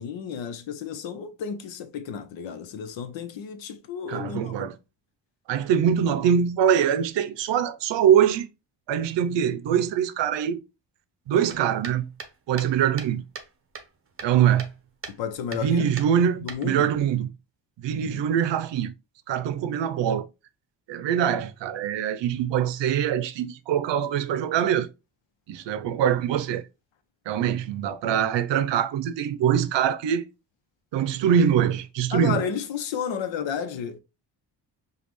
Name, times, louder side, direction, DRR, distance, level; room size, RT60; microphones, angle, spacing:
voice 1, 0.0-4.7 15.1-15.9 16.4-16.9 17.9-18.2 32.1-34.0, left 7 dB, 85° left, 0.8 m, -32 dB
voice 2, 4.1-4.7 5.5-8.5 8.9-10.6 11.3-12.0 12.5-13.2 14.2-14.7 15.6-17.3 17.8-18.9 19.3-20.3 20.9-24.9 25.5-26.6 27.3-30.3 30.9-32.4, right 9 dB, 75° right, 0.6 m, -23 dB
sound 1, 11.5-13.5 13.7-14.8 15.0-15.2 15.5-15.7 16.0-17.0, right 5 dB, 30° right, 0.7 m, -40 dB
5.1 x 2.4 x 3.0 m
cardioid pair, 105°, 44 cm